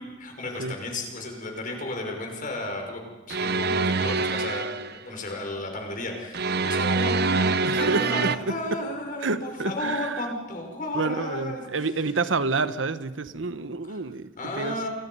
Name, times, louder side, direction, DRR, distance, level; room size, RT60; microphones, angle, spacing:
voice 1, 0.0-11.6 13.9-14.0 14.4-14.9, left 2 dB, 45° left, 2 dB, 5.4 m, -33 dB
sound 1, 3.3-5.0 6.3-8.4, right 4 dB, 55° right, 0.8 m, -25 dB
voice 2, 7.6-8.8 9.2-10.3 10.9-14.3 14.6-14.8, right 3 dB, 85° right, 13 dB, 1.0 m, -29 dB
29.0 x 23.5 x 5.5 m, 1.3 s
head